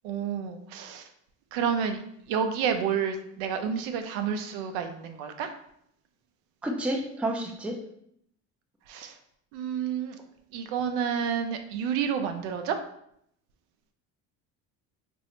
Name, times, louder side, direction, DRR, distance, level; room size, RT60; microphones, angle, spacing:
voice 1, 0.0-1.0 1.5-2.0 2.3-5.5 8.9-9.1 9.5-10.1 10.5-12.8, right 7 dB, 75° right, 6 dB, 0.6 m, -29 dB
voice 2, 6.6-7.8, right 1 dB, 5° right, 1 dB, 0.4 m, -30 dB
3.1 x 2.6 x 2.9 m, 0.72 s
supercardioid pair, 95°, 38 cm